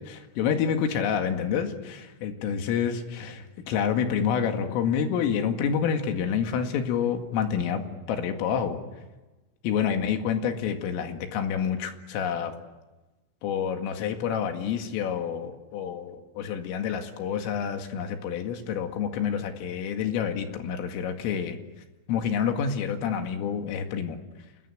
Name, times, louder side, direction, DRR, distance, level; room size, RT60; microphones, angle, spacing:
voice 1, 0.0-7.8 8.1-8.8 9.6-12.5 13.4-21.6 22.1-24.2, left 7 dB, 85° left, 5 dB, 4.6 m, -28 dB
29.5 x 21.0 x 8.6 m, 1.1 s
omnidirectional pair, 5.7 m